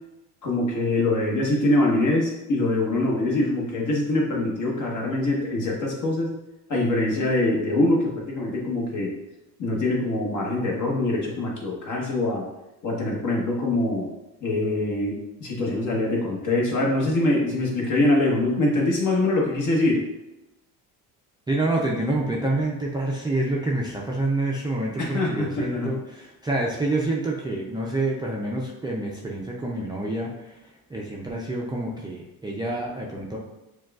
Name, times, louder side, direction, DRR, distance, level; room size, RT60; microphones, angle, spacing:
voice 1, 0.4-6.3 6.7-9.1 9.6-12.4 12.8-14.1 14.4-20.0 25.0-25.9, left 2 dB, 50° left, -2 dB, 1.2 m, -24 dB
voice 2, 21.5-33.4, right 2 dB, 10° right, -3 dB, 0.3 m, -27 dB
6.2 x 2.3 x 2.3 m, 0.95 s
cardioid pair, 120°, 38 cm